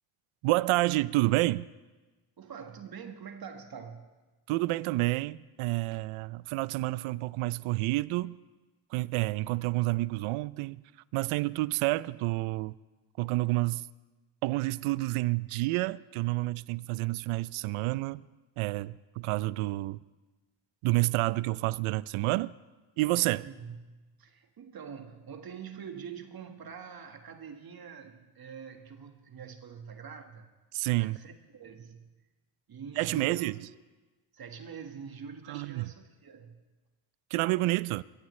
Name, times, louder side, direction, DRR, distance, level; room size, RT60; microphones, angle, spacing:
voice 1, 0.4-1.7 4.5-8.4 8.9-10.8 11.1-12.7 13.2-13.8 14.4-18.2 18.6-20.0 20.8-22.5 23.0-23.5 30.7-31.2 33.0-33.5 35.5-35.9 37.3-38.0, right 20 dB, 80° right, 0.6 m, -29 dB
voice 2, 2.4-4.1 23.4-23.8 24.2-30.5 31.0-32.3 32.7-33.5 34.3-36.6, right 7 dB, 45° right, 1.7 m, -45 dB
22.5 x 16.5 x 3.2 m
supercardioid pair, 80°, 49 cm